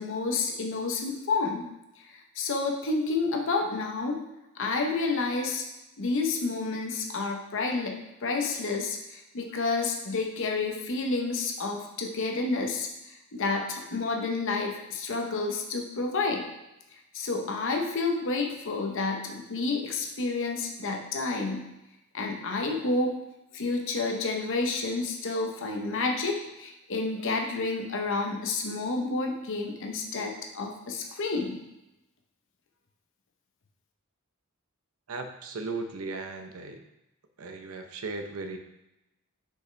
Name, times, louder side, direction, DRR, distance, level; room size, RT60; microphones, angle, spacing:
voice 1, 0.0-1.7 2.0-4.2 4.6-5.6 6.0-12.9 13.3-16.5 17.1-21.7 22.1-23.1 23.5-31.6, left 3 dB, 60° left, 2 dB, 0.8 m, -30 dB
voice 2, 35.1-36.8 37.4-38.6, right 3 dB, 70° right, 6 dB, 0.7 m, -36 dB
6.5 x 5.4 x 3.3 m, 0.92 s
head